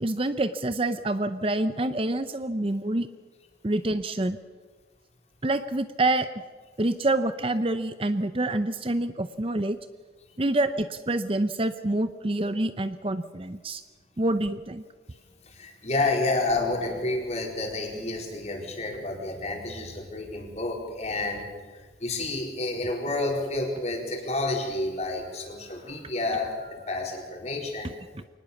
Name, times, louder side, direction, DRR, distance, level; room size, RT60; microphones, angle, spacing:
voice 1, 0.0-3.1 3.6-4.4 5.4-6.3 6.8-9.8 10.4-13.8 14.2-14.8 27.8-28.2, right 2 dB, 30° right, 11 dB, 0.7 m, -27 dB
voice 2, 15.5-21.5 22.0-27.9, left 2 dB, 35° left, 1 dB, 4.4 m, -30 dB
23.5 x 19.5 x 7.2 m, 1.4 s
head